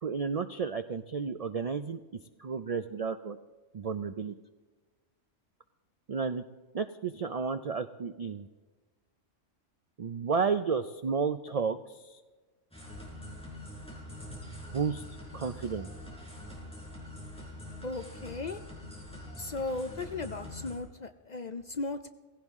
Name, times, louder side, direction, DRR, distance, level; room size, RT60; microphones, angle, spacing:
voice 1, 0.0-3.4 3.7-4.3 6.1-6.4 6.7-8.5 10.0-12.2 14.7-15.0 15.3-15.9, right 5 dB, 70° right, 10 dB, 0.3 m, -32 dB
sound 1, 12.7-20.8, left 1 dB, 5° left, 4.9 m, -44 dB
voice 2, 17.8-18.6 19.4-22.1, left 3 dB, 50° left, 9 dB, 0.5 m, -36 dB
17.0 x 16.0 x 3.6 m, 1.3 s
omnidirectional pair, 1.3 m